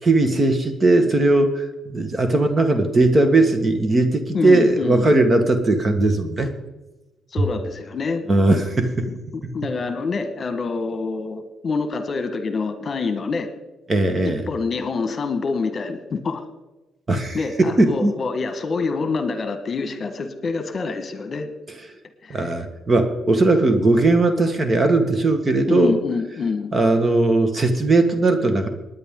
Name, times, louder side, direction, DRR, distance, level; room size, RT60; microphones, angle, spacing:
voice 1, 0.0-6.5 8.3-9.1 9.4-9.5 13.9-14.4 17.1-18.2 22.3-25.9 26.7-28.7, right 2 dB, 30° right, 8 dB, 1.6 m, -18 dB
voice 2, 4.3-5.1 7.3-8.2 9.3-13.5 14.2-16.4 17.3-21.5 22.2-22.5 25.7-26.7, left 4 dB, 40° left, 8 dB, 1.5 m, -26 dB
19.5 x 9.9 x 3.8 m, 1.0 s
cardioid pair, 90°, 0 cm